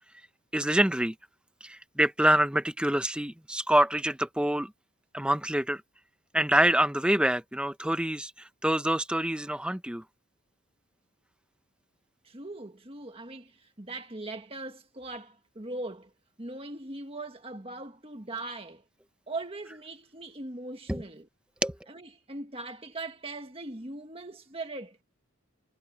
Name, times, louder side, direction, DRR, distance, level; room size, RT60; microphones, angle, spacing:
voice 1, 0.5-1.1 1.6-4.7 5.1-5.8 6.3-10.0 20.9-21.0 21.6-21.7, right 1 dB, 5° right, 0.7 m, -26 dB
voice 2, 12.2-16.1 16.4-18.8 19.3-21.3 21.9-25.0, right 2 dB, 25° right, 1.6 m, -40 dB
head